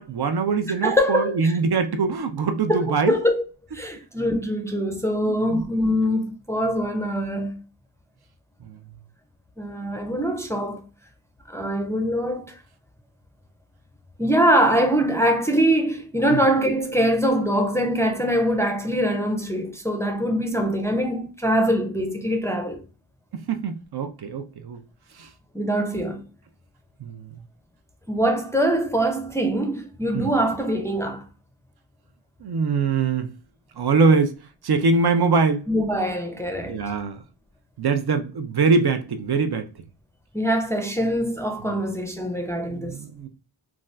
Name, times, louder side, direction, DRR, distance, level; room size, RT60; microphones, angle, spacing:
voice 1, 0.0-3.2 5.2-5.6 8.6-8.8 16.3-16.4 23.3-24.8 25.1-25.3 27.0-27.3 30.1-30.3 32.4-33.3 33.8-34.3 34.6-35.7 36.6-37.2 37.8-39.7 41.7-41.8 42.7-43.3, right 4 dB, 55° right, 0.5 m, -23 dB
voice 2, 0.8-1.6 2.7-3.4 3.7-7.6 9.6-10.8 11.5-12.5 14.2-22.8 25.5-26.2 28.1-31.2 35.7-36.8 40.3-43.0, equal, 5° left, 0.4 m, -23 dB
2.6 x 2.3 x 3.2 m
wide cardioid pair, 60°, 47 cm